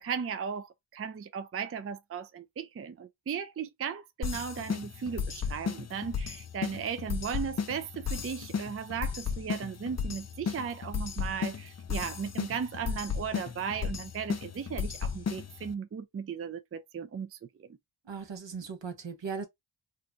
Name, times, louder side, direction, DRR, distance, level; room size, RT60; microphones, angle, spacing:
voice 1, 0.0-17.8, right 7 dB, 35° right, 0.4 m, -36 dB
sound 1, 4.2-15.7, left 6 dB, 35° left, 0.5 m, -35 dB
voice 2, 18.1-19.5, right 5 dB, 75° right, 1.0 m, -38 dB
2.6 x 2.2 x 3.7 m
cardioid pair, 45°, 45 cm